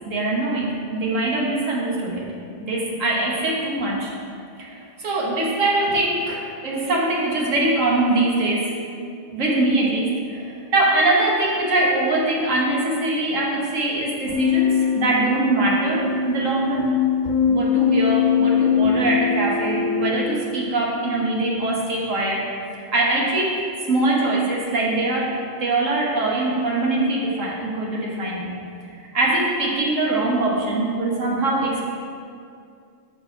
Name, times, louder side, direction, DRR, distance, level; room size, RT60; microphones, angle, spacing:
voice 1, 0.1-2.3 2.6-4.1 4.6-8.7 9.3-16.8 17.5-22.5 22.9-25.3 25.6-28.6 29.1-31.8, right 2 dB, 75° right, -3 dB, 1.6 m, -22 dB
Keyboard (musical), 14.3-20.3, left 6 dB, 75° left, 1.0 m, -21 dB
6.2 x 4.7 x 5.7 m, 2.4 s
omnidirectional pair, 1.4 m